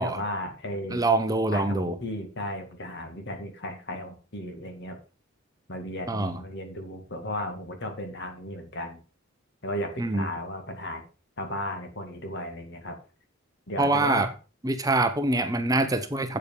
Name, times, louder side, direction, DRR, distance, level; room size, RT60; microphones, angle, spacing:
voice 1, 0.0-1.0 1.5-5.0 5.7-9.0 9.6-11.0 11.4-13.0 13.7-14.2, left 1 dB, 55° left, 2.2 m, -35 dB
voice 2, 0.9-1.9 6.1-6.4 10.0-10.3 13.8-14.3 14.6-16.4, right 2 dB, 20° right, 0.8 m, -25 dB
8.3 x 7.6 x 5.3 m
head